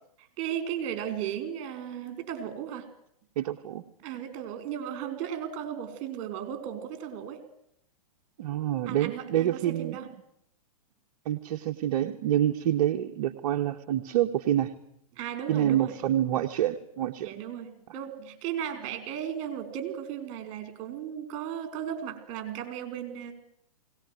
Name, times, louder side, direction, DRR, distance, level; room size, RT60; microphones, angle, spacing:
voice 1, 0.4-2.9 4.0-7.4 8.9-10.1 15.1-15.9 17.2-23.3, right 9 dB, 40° right, 9 dB, 4.6 m, -35 dB
voice 2, 3.4-3.8 8.4-10.0 11.2-14.7 15.5-17.3, right 12 dB, 55° right, 5 dB, 1.3 m, -27 dB
21.5 x 19.0 x 9.4 m, 0.73 s
hypercardioid pair, 130°, 19 cm